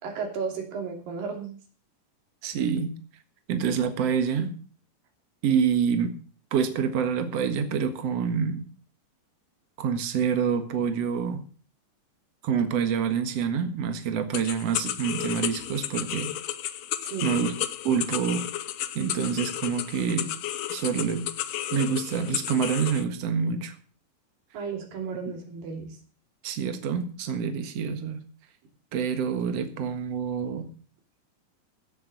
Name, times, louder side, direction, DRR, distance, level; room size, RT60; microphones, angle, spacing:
voice 1, 0.0-1.5 17.0-17.4 24.5-26.0, right 5 dB, 80° right, 2 dB, 4.7 m, -34 dB
voice 2, 2.4-3.0 3.5-4.6 5.4-6.2 6.5-8.7 9.8-11.4 12.4-16.3 17.2-17.5 17.8-18.4 18.9-20.3 20.7-21.3 21.7-23.8 26.4-28.2 28.9-30.7, right 7 dB, 55° right, 7 dB, 2.4 m, -27 dB
sound 1, 14.3-23.0, left 12 dB, 90° left, 1.4 m, -33 dB
16.0 x 7.0 x 6.9 m, 0.41 s
omnidirectional pair, 4.0 m